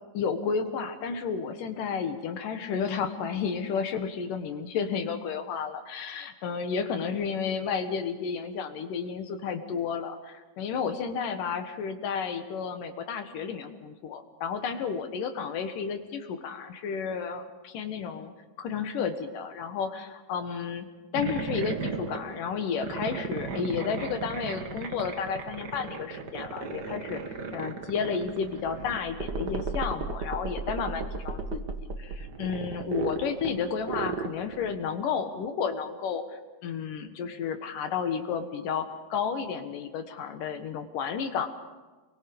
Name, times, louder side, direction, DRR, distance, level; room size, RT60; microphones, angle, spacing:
voice 1, 0.1-18.3 18.6-20.9 21.1-31.6 32.0-36.2 36.6-41.5, left 6 dB, 65° left, 7 dB, 2.8 m, -32 dB
sound 1, 21.1-34.9, right 4 dB, 80° right, 0.9 m, -35 dB
29.0 x 22.5 x 5.3 m, 1.2 s
omnidirectional pair, 4.4 m